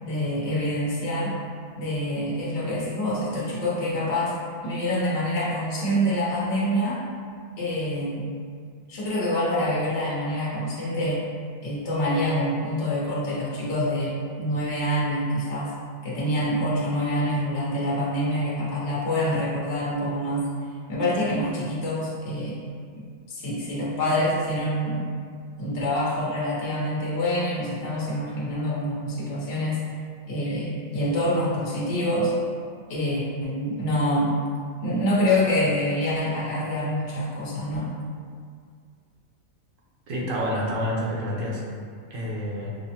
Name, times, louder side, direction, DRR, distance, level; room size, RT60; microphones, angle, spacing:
voice 1, 0.0-1.4 1.8-4.3 4.6-7.0 7.6-8.3 8.9-11.2 11.6-15.7 16.0-20.5 20.9-22.6 23.3-25.0 25.6-29.8 30.3-32.3 32.9-34.3 34.8-37.9, equal, 60° left, -7 dB, 1.1 m, -26 dB
voice 2, 40.1-41.6 42.1-42.7, equal, 75° right, -4 dB, 1.0 m, -28 dB
5.8 x 2.1 x 2.8 m, 2.1 s
omnidirectional pair, 1.4 m